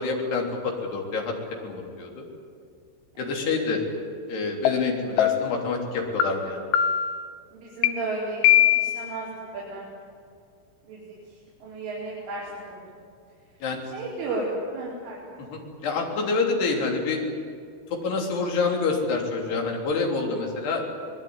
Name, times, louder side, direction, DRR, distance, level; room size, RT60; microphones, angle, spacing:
voice 1, 0.0-1.4 1.6-2.2 3.2-3.8 4.3-6.7 13.6-13.8 15.4-17.2 17.9-20.8, left 4 dB, 60° left, 1 dB, 5.3 m, -27 dB
sound 1, 4.7-4.8 5.2-5.6 6.2-6.3 6.7-7.2 7.8-7.9 8.4-9.1, left 11 dB, 85° left, 3.5 m, -20 dB
voice 2, 7.5-8.4 8.8-9.8 10.9-11.0 11.6-12.8 13.9-15.2, right 2 dB, 90° right, -6 dB, 7.2 m, -33 dB
24.5 x 21.0 x 9.6 m, 2.3 s
omnidirectional pair, 5.5 m